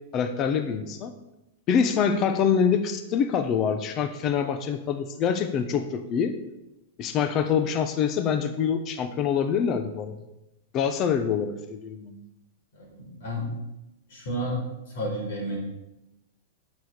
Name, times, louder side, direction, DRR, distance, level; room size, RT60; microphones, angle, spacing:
voice 1, 0.1-1.1 1.7-6.3 7.0-10.2 10.7-12.2, left 7 dB, 35° left, 9 dB, 0.9 m, -25 dB
voice 2, 12.7-13.5 14.1-14.6 14.9-15.6, equal, 70° left, 0 dB, 4.7 m, -31 dB
9.6 x 6.3 x 6.6 m, 0.92 s
hypercardioid pair, 120°, 0 cm